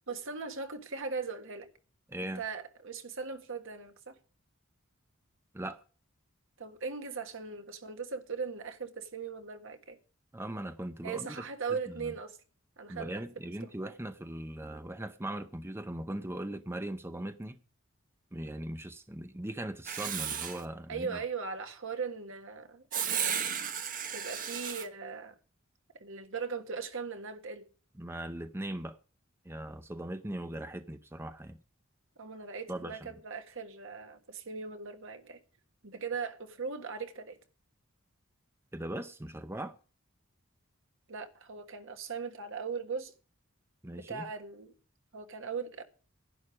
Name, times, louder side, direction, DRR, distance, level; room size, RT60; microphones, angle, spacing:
voice 1, 0.1-1.7 2.3-4.2 6.6-10.0 11.0-12.4 12.8-13.1 13.6-13.7 20.9-23.5 24.1-25.4 26.0-27.6 32.2-35.4 35.8-37.4 41.1-43.1 44.0-44.7 45.1-45.8, right 5 dB, 65° right, 1.6 m, -39 dB
voice 2, 2.1-2.4 5.5-5.8 10.3-11.4 11.9-12.1 12.9-17.6 18.3-21.2 28.0-29.0 29.4-31.6 32.7-33.2 38.7-39.7 43.8-44.2, right 1 dB, 10° right, 0.7 m, -39 dB
Writing, 19.9-20.6 22.9-24.9, right 8 dB, 40° right, 1.2 m, -34 dB
11.0 x 10.0 x 4.9 m
head